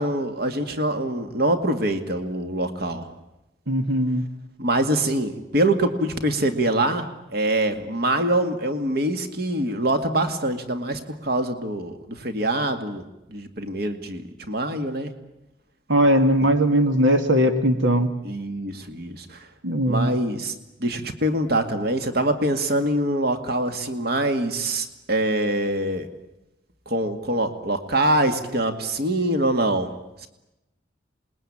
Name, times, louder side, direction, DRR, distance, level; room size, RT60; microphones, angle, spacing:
voice 1, 0.0-3.1 4.6-13.0 13.3-15.1 18.2-19.5 19.9-20.5 20.8-26.1 26.9-29.9 30.2-30.3, right 1 dB, 55° right, 7 dB, 2.2 m, -24 dB
voice 2, 3.7-4.2 15.9-18.1 19.6-20.1, equal, 80° right, 7 dB, 2.0 m, -19 dB
27.5 x 21.0 x 8.8 m, 0.94 s
head